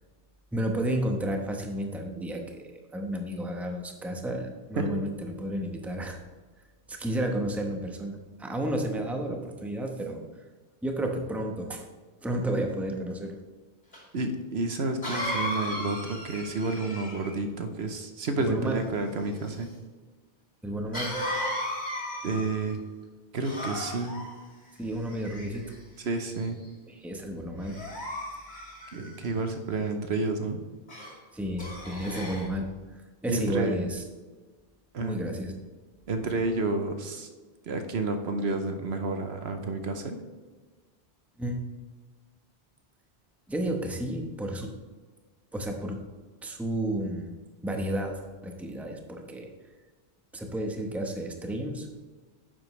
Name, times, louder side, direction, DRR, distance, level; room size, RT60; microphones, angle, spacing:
voice 1, 0.5-6.2 6.9-10.2 10.8-11.8 12.2-13.3 18.4-18.8 20.6-21.1 24.8-25.6 26.9-27.8 31.3-32.7 32.9-34.0 35.0-35.5 41.4-41.7 43.5-44.7 45.5-46.0 46.4-47.3 47.6-49.5 50.3-51.9, right 1 dB, ahead, 2 dB, 0.9 m, -32 dB
Cough, 13.9-14.0 15.0-17.4 20.9-22.7 23.4-24.3 25.1-25.7 26.3-26.6 27.6-29.3 30.9-31.1 31.6-32.5, left 1 dB, 40° left, 2.8 m, -35 dB
voice 2, 14.1-19.7 22.2-22.8 23.3-24.2 26.0-26.6 28.9-30.6 33.3-33.8 34.9-35.2 36.1-37.3 37.7-40.2, right 3 dB, 70° right, 6 dB, 1.1 m, -30 dB
10.0 x 7.7 x 3.2 m, 1.4 s
omnidirectional pair, 1.1 m